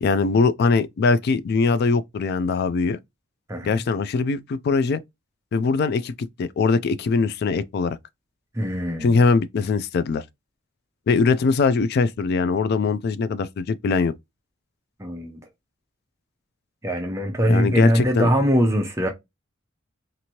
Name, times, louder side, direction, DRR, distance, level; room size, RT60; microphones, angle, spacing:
voice 1, 0.0-3.0 3.6-5.0 5.5-8.0 9.0-10.2 11.1-14.1 17.5-18.3, left 4 dB, 50° left, 0.3 m, -21 dB
voice 2, 3.5-3.8 8.5-9.1 15.0-15.4 16.8-19.1, equal, 15° right, 0.5 m, -22 dB
2.9 x 2.6 x 2.7 m
head